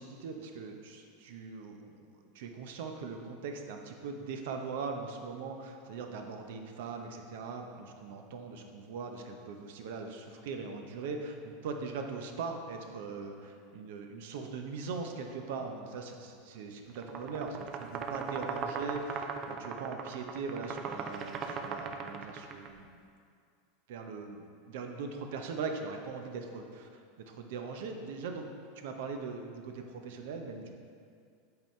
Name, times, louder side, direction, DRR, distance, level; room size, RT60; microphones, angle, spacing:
voice 1, 0.0-23.0 23.9-28.5 28.8-30.7, right 4 dB, 75° right, 4 dB, 0.7 m, -40 dB
sound 1, 16.9-22.7, right 5 dB, 40° right, 0.5 m, -38 dB
8.0 x 3.8 x 4.4 m, 2.3 s
supercardioid pair, 120°, 0 cm